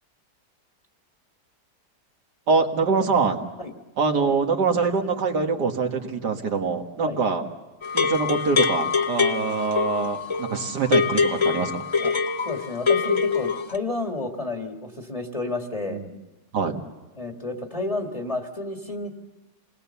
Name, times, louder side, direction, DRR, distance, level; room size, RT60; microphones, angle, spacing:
voice 1, 2.5-3.4 4.0-7.4 7.9-11.8 15.9-16.1 16.5-16.8, right 4 dB, 80° right, 3 dB, 2.3 m, -24 dB
sound 1, 7.8-13.8, left 5 dB, 40° left, 0.4 m, -24 dB
voice 2, 12.4-16.0 17.2-19.1, left 2 dB, 20° left, 3 dB, 1.7 m, -31 dB
28.0 x 20.5 x 7.0 m, 1.1 s
omnidirectional pair, 1.8 m